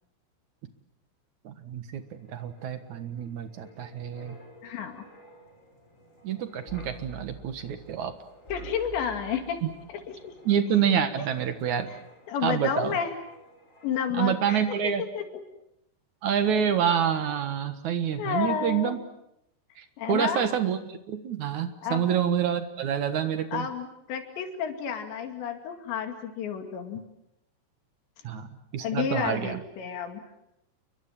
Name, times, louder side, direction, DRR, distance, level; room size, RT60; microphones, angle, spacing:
voice 1, 1.4-4.4 6.2-8.1 9.6-9.7 10.5-11.9 12.4-13.0 14.2-15.0 16.2-19.0 19.8-20.8 21.1-23.7 28.2-29.6, right 8 dB, 60° right, 9 dB, 2.1 m, -27 dB
Wind, 2.0-14.4 14.7-14.9, right 1 dB, 15° left, 6.3 m, -51 dB
voice 2, 4.6-5.0 8.5-9.6 9.9-10.3 11.2-11.3 11.9-12.0 12.3-13.1 13.8-14.8 15.2-15.3 18.2-18.9 20.0-20.5 21.8-22.1 23.5-27.0 28.8-30.2, left 7 dB, 80° left, 5 dB, 4.6 m, -31 dB
30.0 x 23.5 x 7.3 m, 0.80 s
omnidirectional pair, 5.1 m